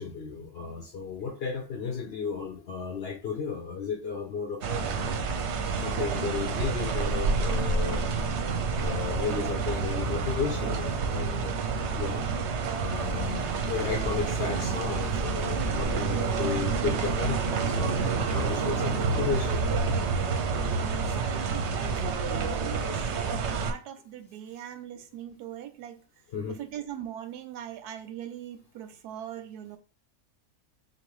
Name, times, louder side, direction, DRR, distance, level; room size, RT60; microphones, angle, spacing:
voice 1, 0.0-5.2 5.8-8.0 8.7-11.6 12.0-12.2 12.7-19.6 26.3-26.6, left 6 dB, 65° left, 0.6 m, -34 dB
sound 1, 4.6-23.7, right 4 dB, 60° right, 0.7 m, -28 dB
voice 2, 21.1-26.0 26.5-29.8, right 10 dB, 90° right, 1.2 m, -41 dB
3.9 x 3.0 x 3.1 m
omnidirectional pair, 1.6 m